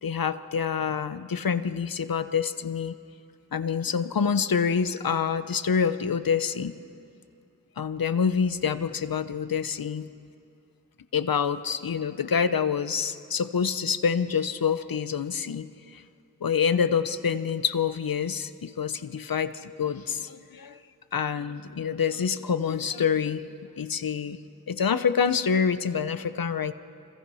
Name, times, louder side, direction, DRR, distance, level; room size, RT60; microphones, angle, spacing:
voice 1, 0.0-2.9 3.5-6.7 7.8-10.1 11.1-16.0 16.4-20.8 21.1-23.5 23.8-24.4 24.7-26.7, left 6 dB, 75° left, 12 dB, 1.0 m, -27 dB
28.0 x 26.5 x 5.7 m, 2.5 s
cardioid pair, 45°, 35 cm